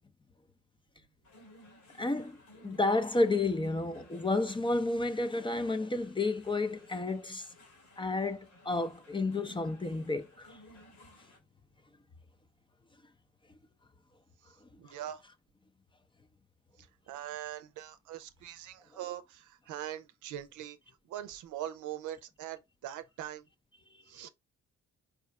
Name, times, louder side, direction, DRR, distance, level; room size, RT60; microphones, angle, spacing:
sound 1, 1.2-11.4, left 1 dB, 85° left, 2.3 m, -58 dB
voice 1, 2.0-2.4 2.6-7.4 8.0-10.6, left 2 dB, 15° left, 0.5 m, -31 dB
voice 2, 14.8-15.2 16.8-20.8 21.0-23.5 24.1-24.3, right 12 dB, 80° right, 0.6 m, -42 dB
4.8 x 2.4 x 3.2 m
cardioid pair, 90°, 30 cm